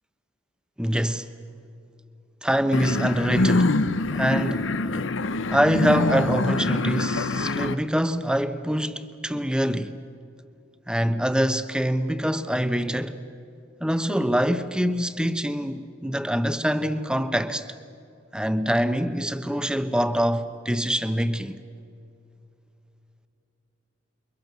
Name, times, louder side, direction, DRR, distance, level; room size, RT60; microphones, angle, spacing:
voice 1, 0.8-1.3 2.4-3.7 4.1-4.7 5.5-9.9 10.9-13.2 13.8-17.7 18.3-21.6, equal, 5° right, 0.9 m, -24 dB
sound 1, 2.7-7.8, left 2 dB, 90° left, 0.9 m, -24 dB
28.5 x 23.5 x 6.7 m
head